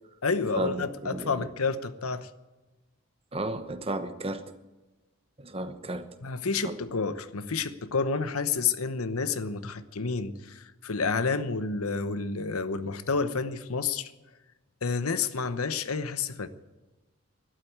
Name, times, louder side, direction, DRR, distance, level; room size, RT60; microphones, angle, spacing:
voice 1, 0.2-2.3 6.2-14.1 14.8-16.5, left 4 dB, 90° left, 1.0 m, -29 dB
voice 2, 3.3-4.4 5.4-6.1 6.6-6.7, right 1 dB, 25° right, 1.0 m, -33 dB
13.0 x 12.0 x 9.4 m
head